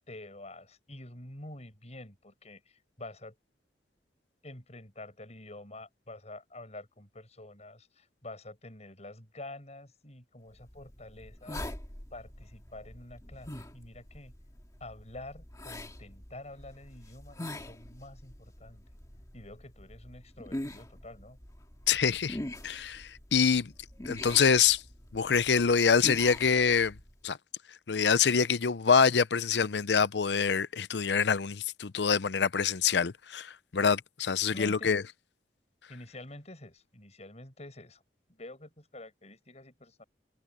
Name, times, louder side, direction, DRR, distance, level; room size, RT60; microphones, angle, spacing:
voice 1, 0.1-3.4 4.4-11.8 12.1-14.3 14.8-18.8 19.3-21.4 34.5-35.0 35.9-38.0 38.3-40.0, left 2 dB, 40° left, 7.4 m, -48 dB
sound 1, 10.6-27.2, left 1 dB, 20° left, 2.0 m, -44 dB
voice 2, 21.9-22.4 22.6-23.7 24.1-24.8 25.1-26.9 27.2-27.4 27.9-35.0, left 6 dB, 75° left, 0.6 m, -25 dB
head